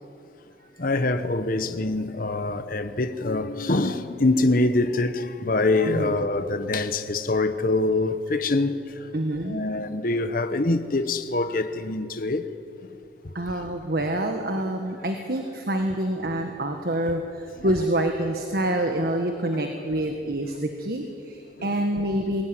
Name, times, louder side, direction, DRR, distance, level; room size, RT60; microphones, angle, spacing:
voice 1, 0.8-9.1 9.4-12.5 12.8-13.0 13.2-13.3 17.6-17.7 19.5-19.7 21.6-21.7, left 2 dB, 50° left, 1.1 m, -25 dB
voice 2, 5.8-6.2 9.1-9.6 13.3-22.4, right 1 dB, 60° right, 1.6 m, -27 dB
22.0 x 17.5 x 9.9 m
head